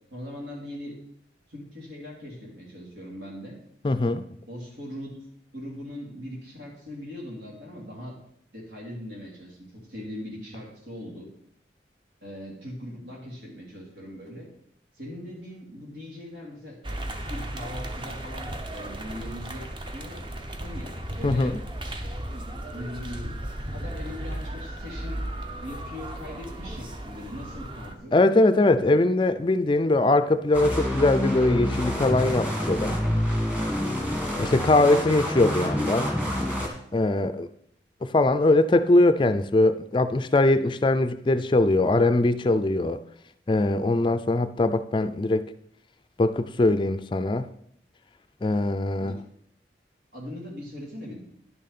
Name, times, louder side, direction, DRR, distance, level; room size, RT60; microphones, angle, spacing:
voice 1, 0.1-0.9 1.5-3.6 4.4-5.2 5.5-8.1 8.5-11.3 12.2-14.5 14.9-16.8 17.2-19.7 19.9-20.2 20.6-21.5 22.7-25.2 25.6-28.2 34.3-34.5 49.0-49.2 50.1-51.2, left 1 dB, 85° right, -2 dB, 3.3 m, -40 dB
voice 2, 3.8-4.2 21.2-21.6 28.1-33.0 34.4-36.1 36.9-37.5 38.0-43.0 43.5-45.5 46.2-47.5 48.4-49.2, left 2 dB, 25° left, 11 dB, 0.4 m, -21 dB
sound 1, 16.8-28.0, right 1 dB, 25° right, 0.7 m, -35 dB
sound 2, 30.5-36.7, equal, 10° right, 1.4 m, -27 dB
11.0 x 6.5 x 4.1 m, 0.72 s
head